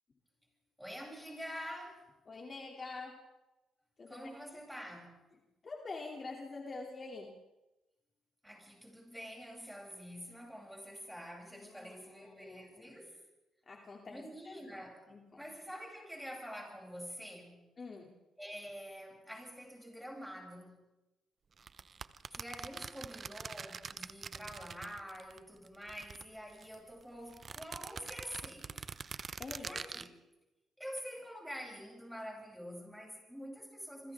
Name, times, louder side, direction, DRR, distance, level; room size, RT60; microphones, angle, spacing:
voice 1, 0.8-2.0 4.1-5.2 8.4-13.2 14.1-17.7 18.4-20.8 22.3-28.9 29.6-30.1 30.8-34.1, equal, ahead, 7.9 m, -47 dB
voice 2, 2.3-3.2 4.0-4.3 5.6-7.3 11.5-13.0 13.7-14.6 15.1-15.4 17.8-18.1 29.4-29.7, left 3 dB, 35° left, 3.0 m, -46 dB
sound 1, 21.6-25.4 25.7-26.8 27.3-30.1, right 5 dB, 40° right, 0.8 m, -45 dB
27.5 x 25.5 x 3.7 m
cardioid pair, 90°, 0 cm